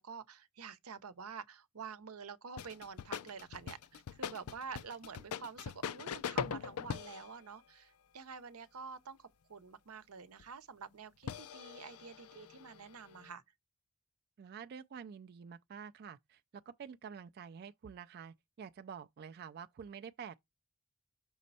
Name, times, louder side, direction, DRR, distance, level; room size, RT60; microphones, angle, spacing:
voice 1, 0.0-13.4, right 5 dB, 90° right, 0.8 m, -48 dB
sound 1, 2.6-7.3 10.4-10.5 11.2-13.3, left 7 dB, 90° left, 0.5 m, -42 dB
voice 2, 14.4-20.4, right 7 dB, 45° right, 0.3 m, -48 dB
6.2 x 4.2 x 4.1 m
head